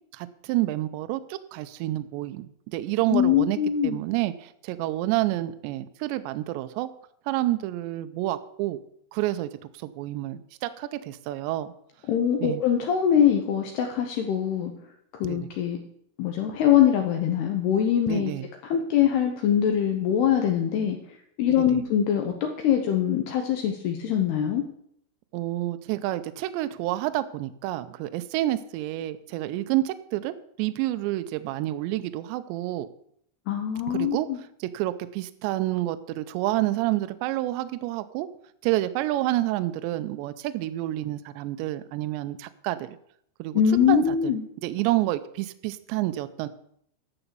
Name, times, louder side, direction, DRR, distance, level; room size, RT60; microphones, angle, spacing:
voice 1, 0.1-3.6 3.8-6.9 7.3-8.8 9.1-9.5 9.8-11.7 12.4-12.6 15.2-15.5 18.1-18.5 21.6-21.8 25.3-32.9 33.9-34.3 34.6-38.3 38.6-43.0 43.4-43.6 43.9-44.4 44.6-46.5, right 15 dB, 85° right, 12 dB, 2.6 m, -29 dB
voice 2, 3.1-4.0 12.1-14.7 15.2-15.8 16.2-18.3 18.6-24.6 33.5-34.4 43.5-44.4, left 9 dB, 75° left, 3 dB, 2.4 m, -23 dB
11.0 x 7.0 x 6.8 m, 0.68 s
omnidirectional pair, 5.7 m